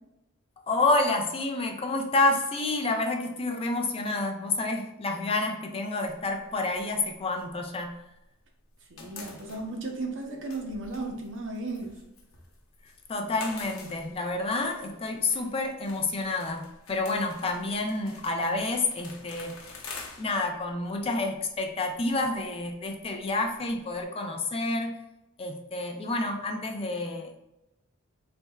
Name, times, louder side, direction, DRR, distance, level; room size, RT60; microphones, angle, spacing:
voice 1, 0.7-8.0 13.1-19.5 20.2-25.0 25.4-27.4, left 2 dB, 25° left, 3 dB, 0.4 m, -29 dB
sound 1, 6.1-8.3 8.6-24.0, left 4 dB, 70° left, 0.8 m, -48 dB
voice 2, 8.9-12.0, right 2 dB, 65° right, 1 dB, 0.8 m, -35 dB
4.1 x 3.4 x 2.3 m, 0.91 s
head